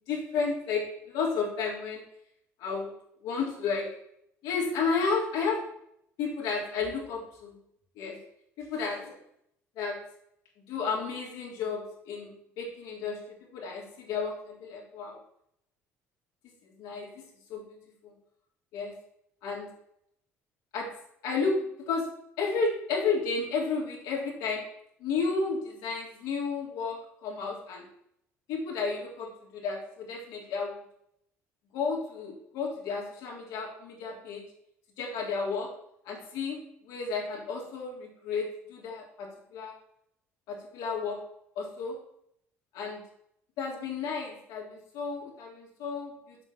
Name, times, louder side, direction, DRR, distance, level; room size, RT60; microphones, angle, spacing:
voice 1, 0.1-2.0 2.6-2.9 3.2-3.9 4.4-5.6 6.2-7.5 8.0-8.2 8.6-9.2 9.8-10.0 10.7-13.2 13.5-15.2 16.8-17.8 18.0-18.1 18.7-18.9 19.4-19.7 20.7-20.9 21.2-22.1 22.4-24.6 25.0-27.9 28.5-30.7 31.7-34.4 35.0-35.7 36.1-36.6 36.8-39.7 40.5-41.2 41.6-42.0 42.7-43.0 43.6-46.4, left 4 dB, 75° left, -2 dB, 3.4 m, -32 dB
8.0 x 5.3 x 7.2 m, 0.74 s
supercardioid pair, 75°, 7 cm